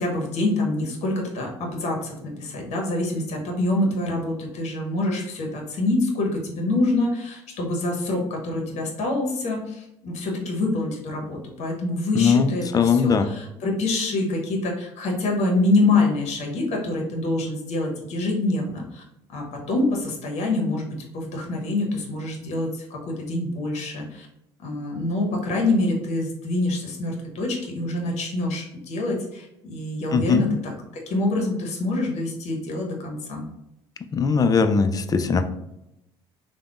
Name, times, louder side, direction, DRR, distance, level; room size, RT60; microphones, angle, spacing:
voice 1, 0.0-19.0 19.3-20.9 21.1-24.3 24.6-33.4, left 2 dB, 55° left, 0 dB, 0.9 m, -26 dB
voice 2, 12.1-13.3 30.1-30.5 34.1-35.4, left 5 dB, 25° left, 8 dB, 0.3 m, -20 dB
3.3 x 2.1 x 2.4 m, 0.84 s
hypercardioid pair, 60°, 14 cm